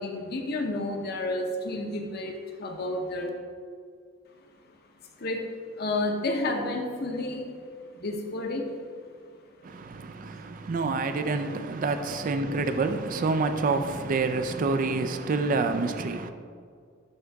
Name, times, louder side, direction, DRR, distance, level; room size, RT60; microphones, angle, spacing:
voice 1, 0.0-3.3 5.2-5.4 5.8-7.4 7.9-8.7, left 2 dB, 55° left, 0.8 m, -30 dB
voice 2, 9.6-16.3, right 3 dB, 45° right, 0.4 m, -27 dB
11.0 x 3.7 x 3.5 m
head